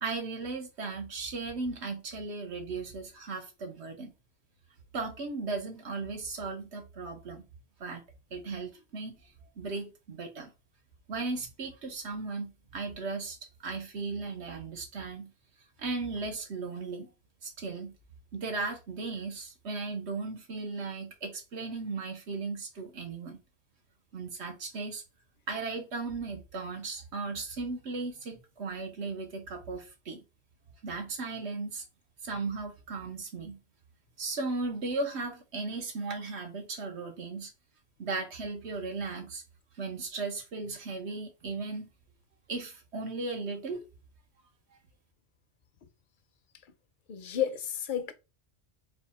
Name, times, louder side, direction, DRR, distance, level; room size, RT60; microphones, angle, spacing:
voice 1, 0.0-4.1 4.9-7.4 7.8-8.0 8.3-9.2 9.6-10.5 11.1-13.4 13.6-15.3 15.8-17.1 17.4-18.0 18.3-23.4 24.1-25.0 25.5-30.2 30.8-31.8 32.2-33.6 34.2-37.5 38.0-39.4 39.8-41.9 42.5-43.8, right 3 dB, 85° right, 1.4 m, -36 dB
voice 2, 47.1-48.1, left 9 dB, 55° left, 0.7 m, -31 dB
4.1 x 2.4 x 4.1 m
omnidirectional pair, 1.1 m